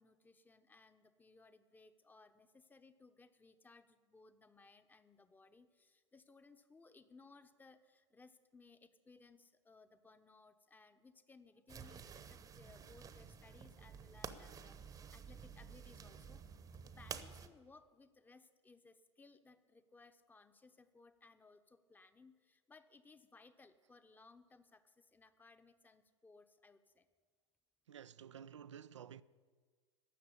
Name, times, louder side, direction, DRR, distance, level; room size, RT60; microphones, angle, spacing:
voice 1, 0.0-16.4 16.9-27.1, left 3 dB, 10° left, 0.9 m, -63 dB
sound 1, 11.7-17.5, right 6 dB, 25° right, 0.9 m, -51 dB
voice 2, 27.9-29.2, right 8 dB, 75° right, 0.4 m, -52 dB
12.5 x 7.8 x 9.9 m
figure-of-eight pair, 85°, 15 cm